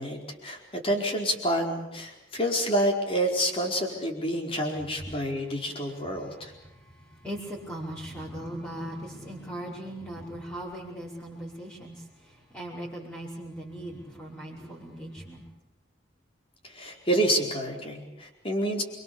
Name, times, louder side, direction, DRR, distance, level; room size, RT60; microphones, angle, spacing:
voice 1, 0.0-6.5 16.6-18.8, equal, 30° left, 1 dB, 4.7 m, -28 dB
voice 2, 6.6-15.5, right 1 dB, 10° left, -8 dB, 5.3 m, -39 dB
28.5 x 24.0 x 7.1 m, 0.91 s
head